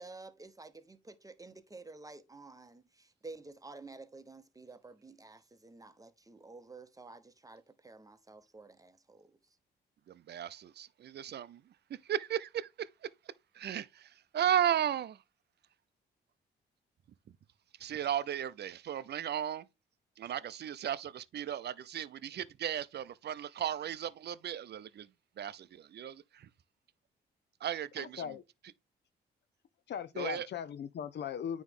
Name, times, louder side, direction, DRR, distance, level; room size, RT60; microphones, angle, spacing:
voice 1, 0.0-9.4, right 3 dB, 15° right, 0.9 m, -51 dB
voice 2, 10.1-11.6 12.1-12.9 13.6-15.2 17.8-19.6 20.2-25.1 25.4-26.5 27.6-28.3 30.2-30.5, right 10 dB, 55° right, 0.5 m, -35 dB
voice 3, 28.0-28.4 29.9-31.6, left 8 dB, 60° left, 0.6 m, -38 dB
9.2 x 3.1 x 3.6 m
supercardioid pair, 60°, 20 cm